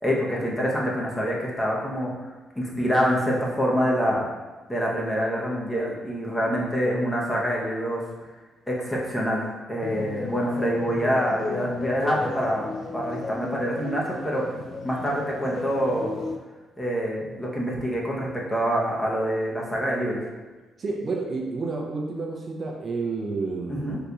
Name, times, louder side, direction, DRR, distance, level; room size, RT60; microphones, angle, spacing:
voice 1, 0.0-2.1 2.6-4.2 4.7-8.0 8.7-9.4 9.7-12.7 12.9-14.4 14.8-16.1 16.8-20.2 23.7-24.0, equal, 15° left, -3 dB, 0.8 m, -26 dB
sound 1, 9.8-16.4, left 3 dB, 55° left, 0.4 m, -33 dB
voice 2, 20.8-24.0, right 3 dB, 45° right, 0 dB, 0.5 m, -30 dB
4.0 x 2.8 x 2.3 m, 1.2 s
cardioid pair, 90°, 0 cm